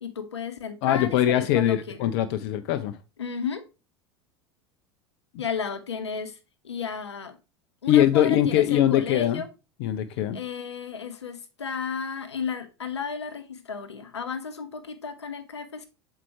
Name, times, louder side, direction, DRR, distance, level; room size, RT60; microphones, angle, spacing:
voice 1, 0.0-2.1 3.2-3.6 5.4-6.4 6.6-7.4 7.8-9.5 10.3-15.9, left 6 dB, 90° left, 0.8 m, -33 dB
voice 2, 0.8-3.0 7.9-9.4 9.8-10.4, left 11 dB, 60° left, 0.6 m, -22 dB
7.5 x 4.5 x 3.0 m
hypercardioid pair, 80°, 14 cm